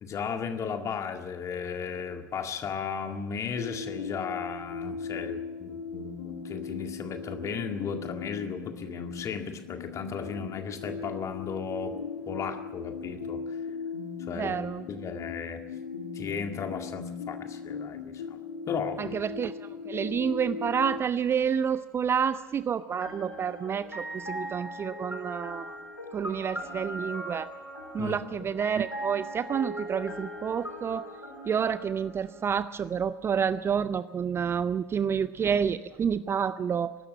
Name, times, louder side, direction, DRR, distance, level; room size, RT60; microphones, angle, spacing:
voice 1, 0.0-12.0 12.3-13.6 14.2-14.6 14.9-15.6 16.1-18.4 18.7-19.2 28.0-28.2, left 6 dB, 30° left, 6 dB, 2.0 m, -35 dB
sound 1, 3.5-21.0, left 5 dB, 70° left, 2.1 m, -38 dB
voice 2, 14.3-14.9 19.0-25.8 26.1-27.5 27.9-31.1 31.5-37.0, right 7 dB, 25° right, 15 dB, 0.5 m, -29 dB
sound 2, 23.0-32.8, equal, 90° left, 4.0 m, -40 dB
23.0 x 12.5 x 8.8 m, 1.1 s
figure-of-eight pair, 75°, 10 cm